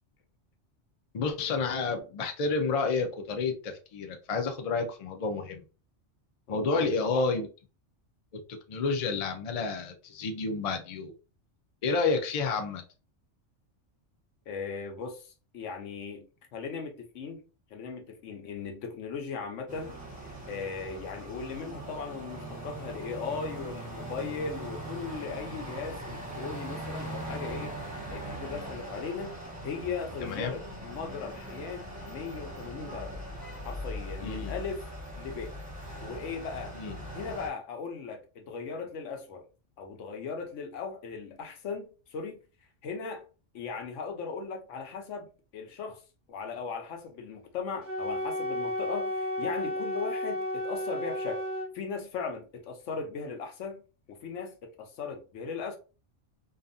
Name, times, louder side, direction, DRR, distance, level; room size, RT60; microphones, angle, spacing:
voice 1, 1.1-5.6 6.5-7.5 8.3-8.4 8.7-11.1 11.8-12.8 30.2-30.6 34.2-34.5 36.7-36.9, left 4 dB, 55° left, 0.4 m, -30 dB
voice 2, 6.5-7.3 14.5-17.4 17.7-33.2 33.6-34.8 35.2-35.6 36.0-36.8 37.1-39.4 39.8-42.4 42.8-43.2 43.5-46.0 46.3-51.4 51.7-53.8 54.1-55.8, left 5 dB, 85° left, 1.0 m, -38 dB
sound 1, 19.7-37.5, right 1 dB, 10° right, 0.9 m, -40 dB
Wind instrument woodwind instrument, 47.8-51.7, left 1 dB, 50° right, 0.6 m, -32 dB
2.5 x 2.3 x 2.5 m
omnidirectional pair, 1.2 m